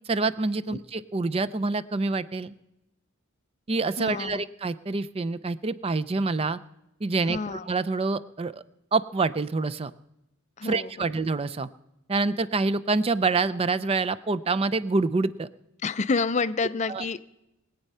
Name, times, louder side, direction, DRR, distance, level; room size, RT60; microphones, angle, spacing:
voice 1, 0.1-2.5 3.7-6.6 7.0-8.6 8.9-9.9 10.6-11.7 12.1-15.5 16.9-17.0, right 3 dB, 25° right, 14 dB, 0.4 m, -26 dB
voice 2, 4.0-4.4 7.3-7.7 10.6-11.1 15.8-17.2, left 4 dB, 35° left, 15 dB, 0.5 m, -29 dB
21.5 x 8.2 x 5.5 m, 0.90 s
head